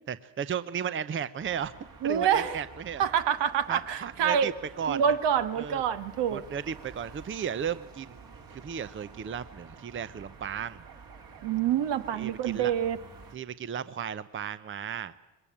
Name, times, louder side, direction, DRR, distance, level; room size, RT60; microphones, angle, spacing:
voice 1, 0.1-1.7 2.0-3.0 3.7-5.0 5.5-5.8 6.3-10.8 12.1-12.7 13.3-15.1, right 8 dB, 25° right, 15 dB, 0.7 m, -35 dB
sound 1, 1.4-13.4, right 5 dB, 50° right, 3.4 m, -50 dB
voice 2, 2.0-2.6 3.0-4.5 4.9-6.4 11.4-13.0, right 8 dB, 65° right, 11 dB, 1.5 m, -26 dB
21.5 x 19.5 x 8.7 m, 1.1 s
supercardioid pair, 85°, 45 cm